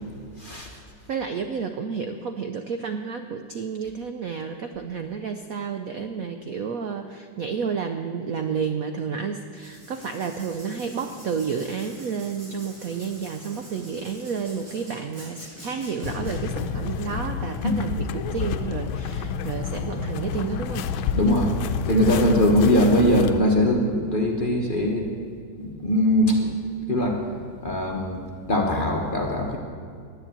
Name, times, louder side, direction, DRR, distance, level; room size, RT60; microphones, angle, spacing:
voice 1, 0.4-0.7 17.6-17.8 21.1-21.5 21.9-25.0 25.6-27.2 27.6-29.6, equal, 30° left, 0 dB, 1.0 m, -21 dB
voice 2, 1.1-20.9, right 6 dB, 85° right, 7 dB, 0.7 m, -31 dB
Writing, 9.6-16.3, right 1 dB, 40° right, 5.4 m, -46 dB
sound 1, 16.0-23.4, left 6 dB, 80° left, 1.4 m, -29 dB
11.0 x 9.9 x 8.8 m, 2.2 s
omnidirectional pair, 2.3 m